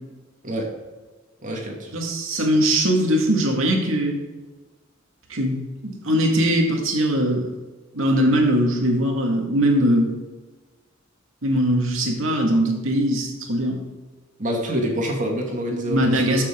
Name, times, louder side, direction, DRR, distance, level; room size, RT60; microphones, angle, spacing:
voice 1, 1.4-1.9 14.4-16.4, equal, 40° right, 0 dB, 2.4 m, -26 dB
voice 2, 1.9-4.2 5.3-7.5 7.9-10.1 11.4-13.8 15.9-16.4, equal, 75° right, 1 dB, 2.2 m, -21 dB
13.0 x 7.3 x 3.9 m, 1.3 s
head